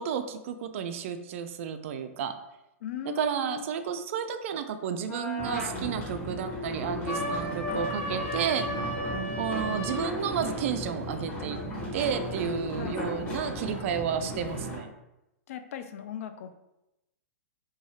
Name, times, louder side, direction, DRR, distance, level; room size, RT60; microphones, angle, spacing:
voice 1, 0.0-2.3 3.2-8.7 9.4-11.6 11.9-14.9, right 8 dB, 60° right, 9 dB, 0.3 m, -32 dB
voice 2, 2.8-3.7 12.7-13.0 15.5-16.5, left 10 dB, 65° left, 9 dB, 0.3 m, -38 dB
sound 1, 5.1-5.7 7.0-10.1, equal, 50° left, 1.2 m, -34 dB
sound 2, 5.4-14.8, equal, 25° left, 1.1 m, -35 dB
2.6 x 2.3 x 3.2 m, 0.91 s
hypercardioid pair, 125°, 8 cm